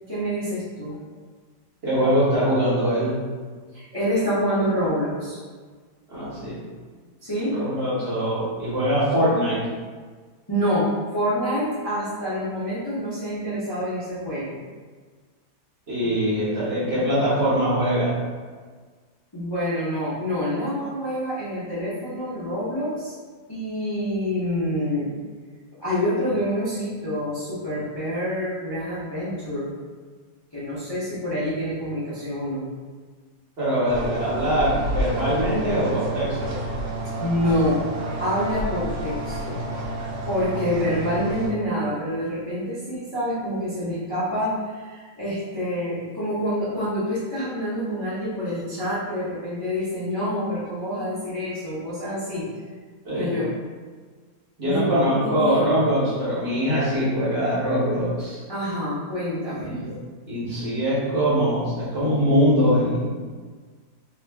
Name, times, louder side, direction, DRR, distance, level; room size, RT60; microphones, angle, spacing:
voice 1, 0.1-1.0 3.7-5.4 7.2-7.6 10.5-14.6 19.3-23.1 23.5-25.1 25.8-29.7 30.5-32.6 37.2-37.8 38.2-39.6 40.3-52.4 53.2-53.5 54.6-55.8 58.5-59.8, equal, 30° left, -12 dB, 0.4 m, -27 dB
voice 2, 1.8-3.1 6.1-6.6 7.5-9.6 15.9-18.1 33.6-36.5 53.0-53.3 54.6-58.4 59.6-59.9 60.3-63.0, equal, 45° right, -9 dB, 1.1 m, -22 dB
sound 1, 33.9-41.5, right 1 dB, 85° right, 1.3 m, -30 dB
2.8 x 2.4 x 3.3 m, 1.5 s
omnidirectional pair, 1.7 m